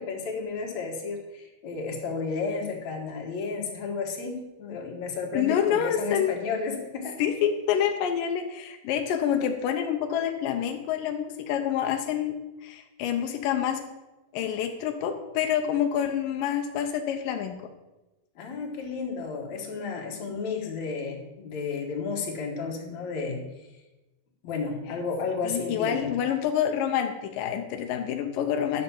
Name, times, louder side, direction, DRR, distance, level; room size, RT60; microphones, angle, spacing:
voice 1, 0.0-7.2 18.4-23.4 24.4-26.1, left 4 dB, 50° left, 1 dB, 2.5 m, -32 dB
voice 2, 5.3-6.4 7.2-13.8 14.3-17.6 25.4-28.8, left 9 dB, 85° left, 5 dB, 1.9 m, -27 dB
11.5 x 6.8 x 7.2 m, 1.1 s
omnidirectional pair, 5.1 m